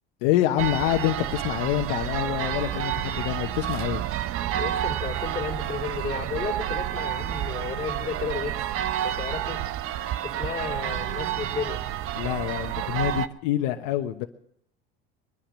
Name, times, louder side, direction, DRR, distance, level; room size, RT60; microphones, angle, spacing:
voice 1, 0.2-4.0 12.2-14.3, left 13 dB, 70° left, 5 dB, 1.1 m, -26 dB
sound 1, 0.6-13.3, right 11 dB, 50° right, 0.8 m, -29 dB
voice 2, 4.6-8.6 9.0-9.6 10.2-11.8, left 6 dB, 25° left, -5 dB, 3.2 m, -33 dB
22.0 x 10.5 x 6.3 m, 0.72 s
supercardioid pair, 90°, 29 cm